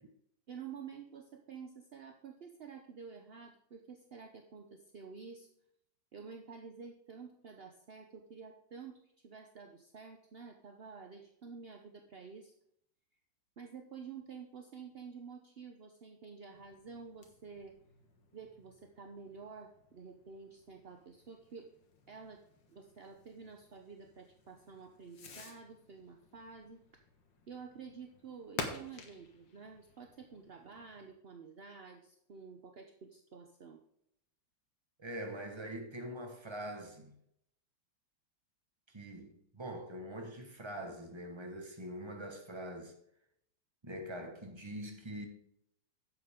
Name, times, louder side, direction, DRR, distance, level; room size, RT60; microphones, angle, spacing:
voice 1, 0.5-5.5 6.1-12.5 13.6-17.8 18.3-21.7 22.1-22.4 22.7-27.0 27.5-33.8, right 5 dB, 50° right, 0.7 m, -50 dB
Fireworks, 16.5-31.1, left 4 dB, 80° left, 2.2 m, -51 dB
voice 2, 35.0-37.1 38.9-42.9 43.8-45.3, right 1 dB, 15° right, 1.3 m, -43 dB
11.0 x 8.1 x 3.7 m
omnidirectional pair, 2.0 m